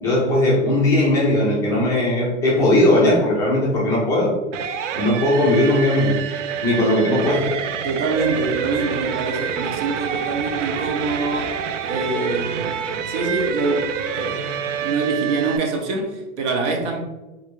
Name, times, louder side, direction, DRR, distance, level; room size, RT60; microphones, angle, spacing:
voice 1, 0.0-4.4 5.0-6.2 6.6-7.5, left 1 dB, 10° left, 0.3 m, -18 dB
sound 1, 4.5-15.6, right 7 dB, 85° right, 0.5 m, -27 dB
voice 2, 7.8-11.6 11.9-14.5 14.8-17.0, right 3 dB, 65° right, 0.9 m, -25 dB
3.2 x 2.5 x 3.0 m
supercardioid pair, 145°, 36 cm